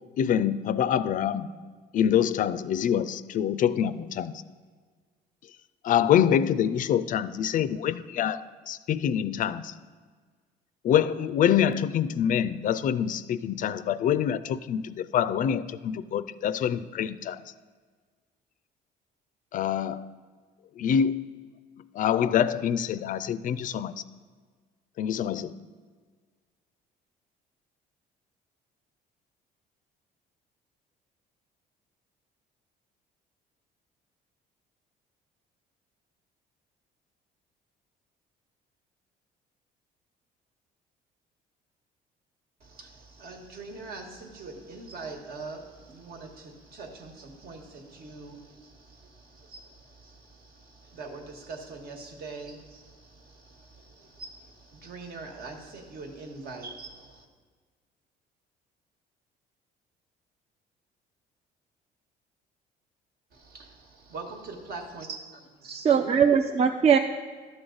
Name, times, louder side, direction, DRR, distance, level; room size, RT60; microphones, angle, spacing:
voice 1, 0.2-1.5 1.9-4.4 5.8-9.7 10.8-17.5 19.5-20.1 20.8-21.4 21.9-23.9 25.0-25.5, left 9 dB, 50° left, 15 dB, 0.4 m, -25 dB
voice 2, 42.6-57.3 63.3-65.9, right 3 dB, 65° right, 4 dB, 1.4 m, -43 dB
voice 3, 65.6-67.0, right 7 dB, 40° right, 7 dB, 0.4 m, -21 dB
12.0 x 6.2 x 3.9 m, 1.6 s
cardioid pair, 110°, 17 cm